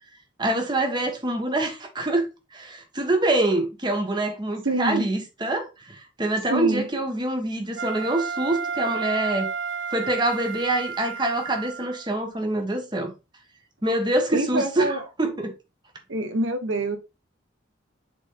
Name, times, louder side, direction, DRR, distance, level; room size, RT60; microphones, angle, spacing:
voice 1, 0.4-9.5 9.9-13.1 13.8-15.5, right 1 dB, 20° right, 1.5 m, -25 dB
voice 2, 4.6-5.1 6.5-6.8 14.3-15.0 16.1-17.0, right 2 dB, 80° right, 1.4 m, -25 dB
Wind instrument woodwind instrument, 7.8-12.1, right 6 dB, 60° right, 0.5 m, -31 dB
7.3 x 4.1 x 4.0 m
head